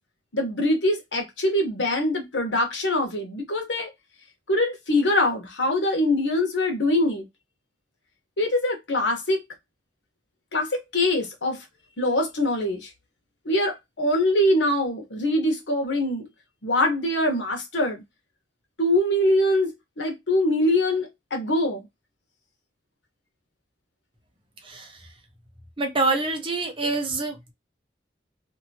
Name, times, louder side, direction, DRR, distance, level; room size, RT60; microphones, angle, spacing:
voice 1, 0.3-3.9 4.5-7.2 8.4-9.4 10.5-11.6 12.0-12.9 13.4-16.3 16.6-18.0 18.8-19.7 20.0-21.8, left 1 dB, 90° left, 1.2 m, -23 dB
voice 2, 25.8-27.3, right 3 dB, 30° right, 0.8 m, -25 dB
2.9 x 2.7 x 2.7 m
head